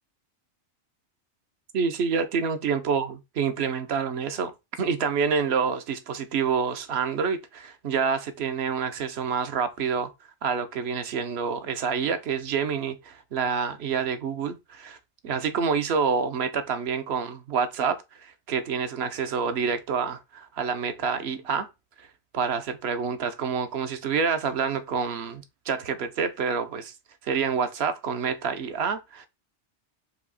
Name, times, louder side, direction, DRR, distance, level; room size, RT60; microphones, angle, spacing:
voice 1, 1.7-10.1 10.4-15.0 15.2-21.7 22.0-22.1 22.3-26.9 27.2-29.3, right 6 dB, 65° right, 0.9 m, -27 dB
4.9 x 2.7 x 4.0 m
omnidirectional pair, 1.2 m